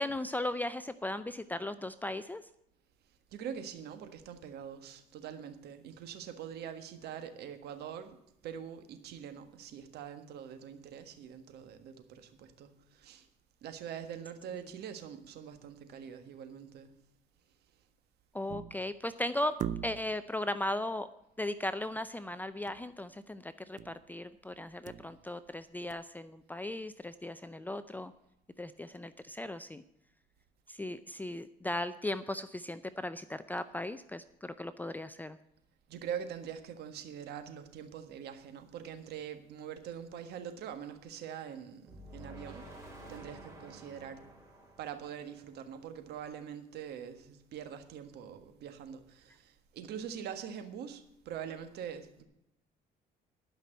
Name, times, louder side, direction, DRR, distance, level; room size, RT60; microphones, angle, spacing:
voice 1, 0.0-2.4 18.3-19.6 19.8-21.1 21.4-28.1 28.6-29.8 30.7-35.4, left 1 dB, 10° left, 12 dB, 0.5 m, -37 dB
voice 2, 3.3-13.3 13.6-16.9 35.9-42.6 43.1-44.2 44.8-52.2, right 8 dB, 75° right, 8 dB, 1.6 m, -44 dB
sound 1, 18.5-18.9 19.6-20.3 22.7-22.9 23.2-23.3 23.8-24.1 24.5-25.5 25.9-26.0, right 9 dB, 45° right, 0.5 m, -40 dB
sound 2, 41.9-45.9, right 1 dB, 15° right, 4.0 m, -51 dB
11.5 x 6.0 x 8.9 m, 0.81 s
cardioid pair, 110°, 17 cm